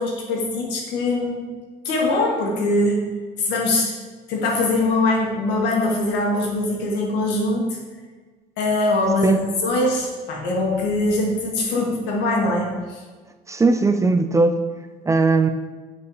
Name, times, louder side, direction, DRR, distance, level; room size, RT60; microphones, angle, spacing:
voice 1, 0.0-1.5 1.9-3.1 3.4-3.9 4.3-7.8 8.6-13.0, left 2 dB, 85° left, -1 dB, 1.7 m, -22 dB
voice 2, 13.5-14.6 15.1-15.5, right 3 dB, 20° right, 8 dB, 0.4 m, -18 dB
8.4 x 4.8 x 3.3 m, 1.4 s
cardioid pair, 110°, 17 cm